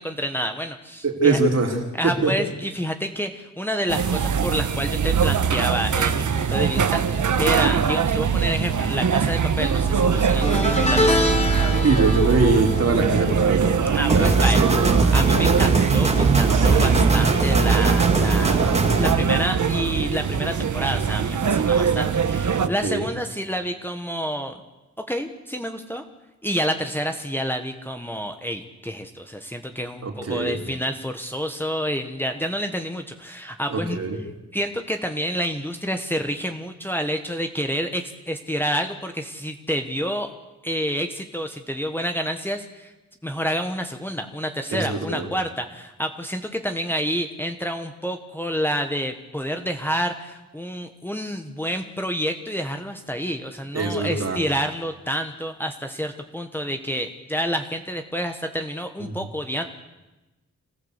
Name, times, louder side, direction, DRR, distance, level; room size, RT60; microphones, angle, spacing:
voice 1, 0.0-1.4 1.9-11.4 13.9-14.6 15.1-18.7 19.0-24.6 25.0-26.0 26.4-34.0 34.5-40.3 40.6-42.9 43.2-59.6, equal, 5° left, 4 dB, 1.4 m, -28 dB
voice 2, 1.0-1.8 2.0-2.3 11.8-13.6 14.1-14.7 16.6-16.7 22.6-23.0 30.0-30.6 33.7-34.2 44.7-45.3 53.7-54.4, right 3 dB, 55° right, 1 dB, 3.9 m, -22 dB
sound 1, 3.9-22.7, right 7 dB, 75° right, 1.2 m, -22 dB
sound 2, 10.4-15.8 16.1-16.5 17.7-17.8, left 1 dB, 20° left, 3.4 m, -26 dB
sound 3, 14.1-19.1, right 3 dB, 20° right, 2.1 m, -20 dB
26.5 x 15.5 x 8.2 m, 1.1 s
wide cardioid pair, 140°, 30 cm